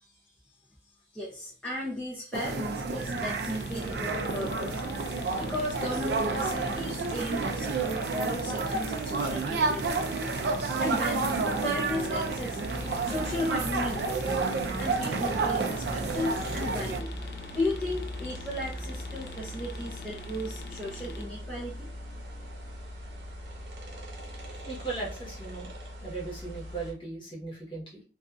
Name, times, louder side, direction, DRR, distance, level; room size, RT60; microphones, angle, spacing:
voice 1, 1.1-4.8 5.4-10.1 10.8-11.3 11.6-12.6 13.0-14.4 14.8-17.1 17.5-21.9, left 1 dB, 5° left, -7 dB, 0.6 m, -35 dB
sound 1, 2.3-17.0, right 3 dB, 65° right, 0.4 m, -30 dB
sound 2, 2.9-21.2, equal, 60° left, 0.3 m, -43 dB
sound 3, 12.6-26.9, equal, 80° right, 0.8 m, -41 dB
voice 2, 24.6-25.7 26.0-28.0, right 3 dB, 30° left, -5 dB, 1.0 m, -37 dB
2.5 x 2.4 x 2.3 m, 0.35 s
head